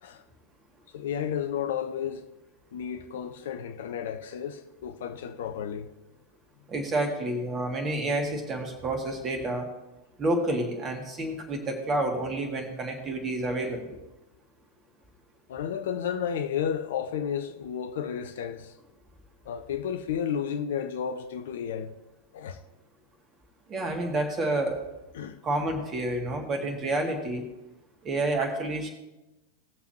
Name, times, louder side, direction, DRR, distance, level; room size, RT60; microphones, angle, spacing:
voice 1, 0.9-2.3 2.7-5.9 15.5-18.7 19.4-21.9 22.3-22.6 25.1-25.4, left 8 dB, 55° left, 0.7 m, -32 dB
voice 2, 6.7-9.7 10.2-14.0 23.7-24.8 25.4-27.5 28.0-28.9, right 2 dB, 25° right, 2.1 m, -29 dB
18.5 x 7.0 x 3.1 m
figure-of-eight pair, 90°, 0 cm